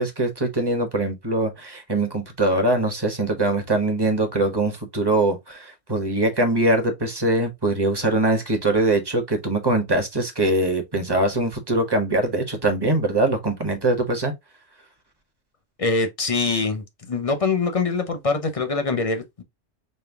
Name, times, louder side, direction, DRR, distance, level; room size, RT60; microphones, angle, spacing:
voice 1, 0.0-14.3, right 2 dB, 20° right, 0.9 m, -22 dB
voice 2, 15.8-19.4, left 4 dB, 35° left, 0.6 m, -24 dB
5.4 x 2.2 x 3.4 m
omnidirectional pair, 1.3 m